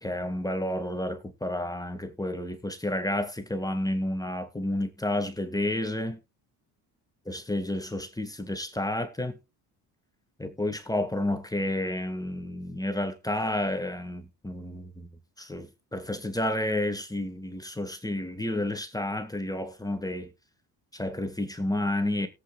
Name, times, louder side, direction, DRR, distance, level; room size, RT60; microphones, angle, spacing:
voice 1, 0.0-6.2 7.3-9.4 10.4-15.1 15.4-20.3 20.9-22.3, left 1 dB, 10° left, 1.9 m, -30 dB
18.0 x 8.5 x 2.5 m
supercardioid pair, 70°, 46 cm